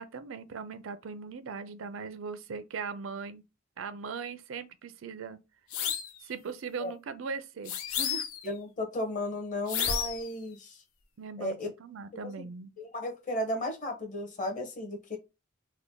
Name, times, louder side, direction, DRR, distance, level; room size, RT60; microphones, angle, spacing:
voice 1, 0.0-3.4 3.8-5.4 6.2-8.3 11.2-12.7, right 5 dB, 65° right, 0.4 m, -39 dB
sound 1, 5.7-6.2 7.7-8.5 9.7-10.3, left 8 dB, 90° left, 0.6 m, -31 dB
voice 2, 8.4-10.8 11.4-11.7 12.2-12.5 12.8-15.2, left 1 dB, 40° left, 1.1 m, -34 dB
3.3 x 2.2 x 3.7 m
head